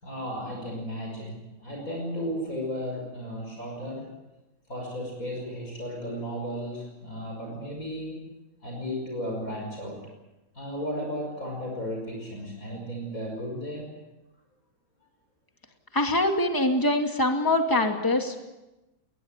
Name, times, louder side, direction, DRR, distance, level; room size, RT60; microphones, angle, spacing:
voice 1, 0.0-4.1 4.7-8.3 8.6-10.0 10.5-13.9, equal, 40° left, 0 dB, 6.1 m, -34 dB
voice 2, 15.9-18.5, left 1 dB, 10° left, 4 dB, 2.3 m, -24 dB
21.0 x 20.5 x 8.9 m, 0.99 s
omnidirectional pair, 2.2 m